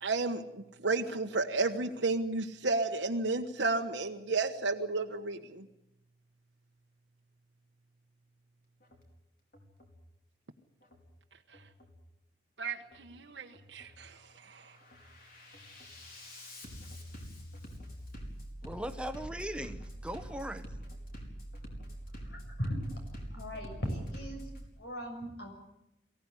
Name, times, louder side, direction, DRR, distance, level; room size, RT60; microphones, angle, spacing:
voice 1, 0.0-5.6 12.6-14.7, right 3 dB, 80° right, 2 dB, 1.2 m, -32 dB
Bass drum, 8.8-9.1 9.5-10.0 10.8-11.1 11.5-12.0 12.8-13.1 13.5-14.0 14.4-24.7, equal, 50° left, 4.8 m, -46 dB
voice 2, 18.6-20.7, right 1 dB, 5° right, 8 dB, 1.2 m, -39 dB
voice 3, 22.3-23.0 23.3-24.4 24.8-25.5, equal, 65° left, 4 dB, 7.1 m, -37 dB
23.0 x 16.5 x 9.9 m, 0.87 s
head